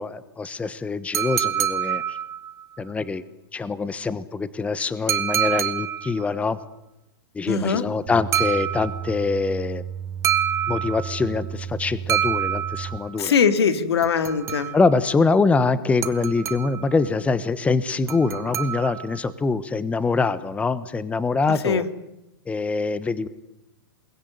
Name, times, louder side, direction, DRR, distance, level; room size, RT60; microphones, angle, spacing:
voice 1, 0.0-2.2 2.8-3.2 3.5-6.6 7.3-9.8 10.7-13.3 14.7-21.8 22.5-23.3, left 4 dB, 10° left, 15 dB, 1.2 m, -24 dB
sound 1, 1.1-2.6 5.1-6.2 8.3-9.2 10.2-11.3 12.1-13.1 14.0-15.0 16.0-16.9 18.1-19.2, right 9 dB, 20° right, 1.5 m, -26 dB
voice 2, 7.5-7.8 13.1-14.7 21.6-21.8, left 6 dB, 85° left, 10 dB, 2.9 m, -21 dB
sound 2, 8.1-13.0, right 8 dB, 50° right, 4.1 m, -34 dB
29.0 x 20.5 x 9.5 m, 0.90 s
hypercardioid pair, 140°, 13 cm